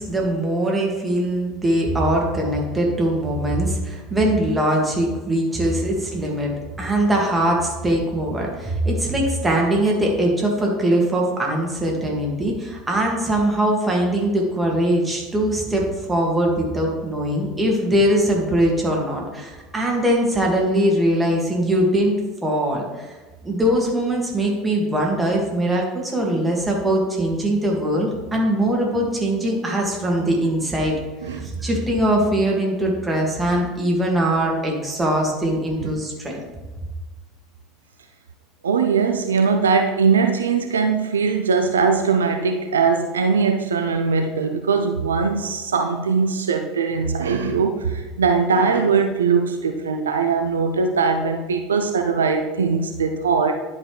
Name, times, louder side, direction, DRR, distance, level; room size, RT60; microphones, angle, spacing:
voice 1, 0.0-6.5 6.8-23.1 23.4-30.9 31.2-36.4, right 1 dB, 15° right, -1 dB, 2.2 m, -21 dB
voice 2, 31.2-31.5 35.8-35.9 38.6-53.6, right 5 dB, 75° right, 5 dB, 0.5 m, -21 dB
11.0 x 5.3 x 3.4 m, 1.2 s
figure-of-eight pair, 70°, 0 cm